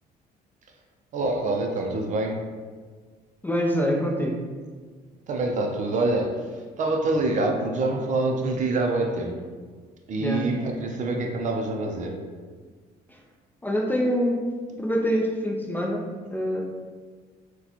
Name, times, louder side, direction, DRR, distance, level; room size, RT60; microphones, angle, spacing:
voice 1, 1.1-2.5 5.3-9.5 10.1-12.3, right 2 dB, 45° right, 2 dB, 0.5 m, -26 dB
voice 2, 3.4-4.4 10.2-10.4 13.1-13.2 13.6-14.4 14.7-16.6, equal, 10° left, -1 dB, 0.4 m, -25 dB
4.0 x 2.2 x 2.8 m, 1.5 s
cardioid pair, 110°, 17 cm